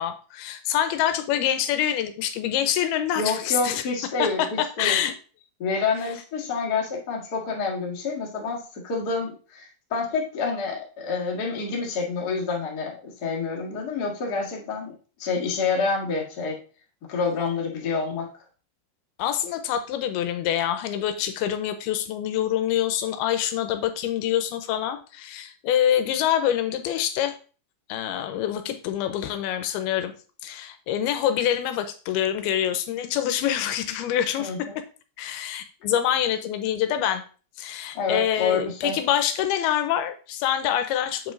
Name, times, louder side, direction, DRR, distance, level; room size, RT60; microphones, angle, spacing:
voice 1, 0.0-3.8 4.2-5.1 19.2-27.4 27.9-30.1 30.4-34.7 35.2-37.2 37.6-41.3, left 10 dB, 85° left, 9 dB, 2.5 m, -26 dB
voice 2, 3.1-5.0 5.6-14.9 15.2-16.6 17.1-18.3 34.4-34.7 37.9-38.9, left 4 dB, 50° left, -1 dB, 1.1 m, -28 dB
7.6 x 5.0 x 3.7 m, 0.37 s
omnidirectional pair, 4.6 m